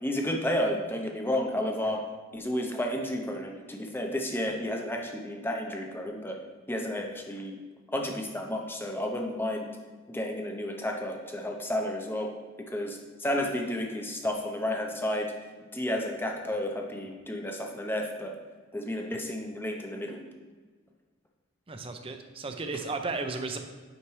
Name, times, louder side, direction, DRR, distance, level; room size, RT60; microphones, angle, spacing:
voice 1, 0.0-2.0 2.3-6.4 6.7-7.6 7.9-9.7 10.1-12.3 12.7-15.3 15.7-18.3 18.7-20.2, left 1 dB, 10° left, 1 dB, 0.7 m, -31 dB
voice 2, 21.7-23.6, right 3 dB, 25° right, 6 dB, 0.5 m, -34 dB
8.7 x 5.7 x 3.2 m, 1.4 s
head